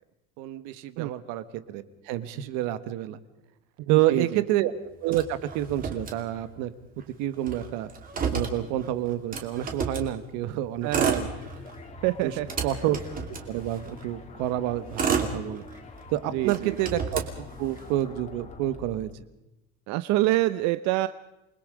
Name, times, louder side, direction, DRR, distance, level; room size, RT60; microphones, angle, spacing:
voice 1, 0.4-3.2 3.9-4.7 5.0-6.7 7.2-7.9 8.3-11.3 12.2-12.3 12.6-13.0 13.5-15.6 16.1-19.1, right 13 dB, 80° right, 13 dB, 1.6 m, -28 dB
voice 2, 3.9-4.4 10.8-11.6 12.0-12.5 16.3-16.8 19.9-21.1, right 17 dB, 60° right, 13 dB, 0.7 m, -26 dB
Motor vehicle (road), 5.1-6.7 7.0-7.1 7.3-10.1 10.7-11.8 12.2-14.0 14.6-16.0 16.4-18.0, right 5 dB, 30° right, 2.6 m, -31 dB
sound 1, 11.0-19.2, left 2 dB, 20° left, 2.5 m, -45 dB
28.0 x 20.5 x 5.0 m, 0.94 s
cardioid pair, 160°, 30 cm